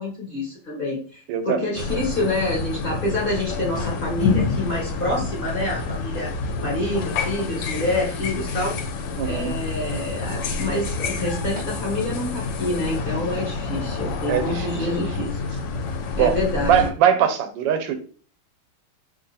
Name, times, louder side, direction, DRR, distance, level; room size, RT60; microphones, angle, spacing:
voice 1, 0.0-6.3 6.6-8.8 9.2-15.6 16.2-16.9, left 1 dB, 40° left, 0.9 m, -27 dB
voice 2, 1.3-2.1 9.2-9.5 14.3-15.0 16.2-16.4 16.7-17.9, right 8 dB, 85° right, 1.3 m, -22 dB
sound 1, 1.7-16.9, left 4 dB, 80° left, 1.3 m, -28 dB
2.8 x 2.7 x 4.0 m
omnidirectional pair, 1.9 m